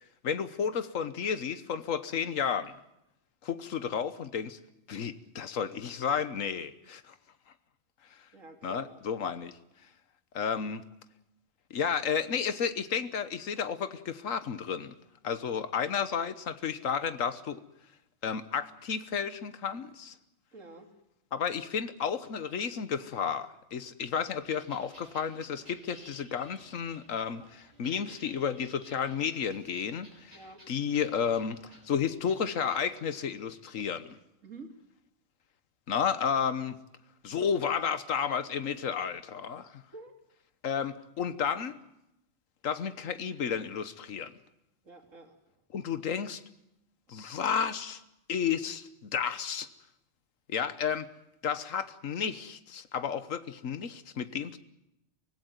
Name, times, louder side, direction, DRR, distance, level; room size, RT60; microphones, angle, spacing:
voice 1, 0.2-2.7 3.4-4.6 4.9-7.1 8.6-9.5 10.3-10.9 11.7-15.0 15.2-17.6 18.2-20.1 21.3-30.4 30.7-34.2 35.9-36.8 37.2-39.8 40.6-41.8 42.6-44.3 45.7-46.4 47.1-48.0 48.3-49.7 50.5-51.1 51.4-54.6, left 7 dB, 80° left, 1.5 m, -32 dB
voice 2, 8.3-9.0 20.5-20.9 30.3-30.6 34.4-34.7 39.9-40.1 44.8-45.4, right 3 dB, 75° right, 3.2 m, -48 dB
sound 1, 24.3-32.8, right 1 dB, 35° right, 5.7 m, -56 dB
24.5 x 17.0 x 9.2 m
omnidirectional pair, 1.3 m